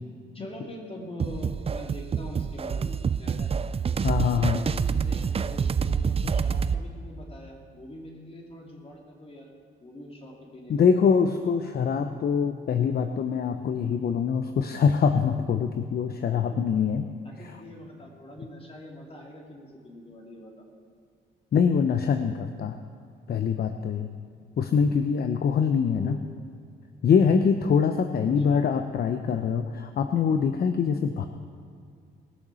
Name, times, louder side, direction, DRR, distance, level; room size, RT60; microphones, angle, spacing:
voice 1, 0.3-3.5 4.2-9.5 9.8-10.8 16.5-16.6 17.2-20.7 25.9-26.2 28.5-28.6, left 1 dB, 30° left, 0 dB, 3.1 m, -44 dB
sound 1, 1.2-6.8, right 6 dB, 30° right, 0.5 m, -27 dB
voice 2, 4.0-4.6 6.2-6.3 10.7-17.1 21.5-22.8 23.3-24.1 24.6-26.2 27.0-31.3, left 6 dB, 50° left, 8 dB, 0.7 m, -24 dB
20.0 x 6.8 x 6.3 m, 2.3 s
cardioid pair, 90°, 20 cm